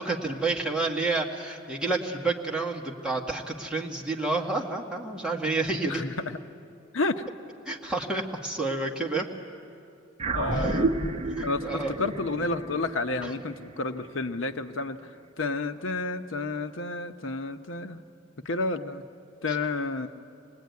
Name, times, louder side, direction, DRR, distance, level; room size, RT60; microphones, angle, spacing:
voice 1, 0.0-6.0 7.7-9.3 10.6-10.8 11.4-11.9, right 3 dB, 5° right, -1 dB, 1.8 m, -29 dB
voice 2, 5.6-6.1 6.9-7.2 10.3-11.0 11.3-18.0 18.4-19.0 19.4-20.1, left 3 dB, 80° left, 9 dB, 0.9 m, -31 dB
sound 1, 10.2-14.8, right 2 dB, 35° right, 0.9 m, -31 dB
26.0 x 19.5 x 9.5 m, 2.5 s
head